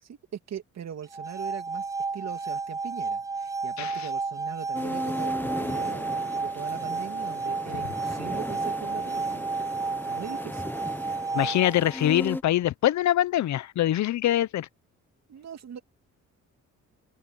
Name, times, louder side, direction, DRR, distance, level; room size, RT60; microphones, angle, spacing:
voice 1, 0.0-9.5 10.1-10.7 15.3-15.8, right 9 dB, 60° right, 2.5 m, -40 dB
sound 1, 1.0-12.0, right 4 dB, 10° right, 0.4 m, -32 dB
voice 2, 3.8-4.1 11.3-14.7, left 13 dB, 65° left, 0.8 m, -24 dB
sound 2, 4.7-12.4, left 1 dB, 5° left, 1.2 m, -36 dB
open air
cardioid pair, 90°, 30 cm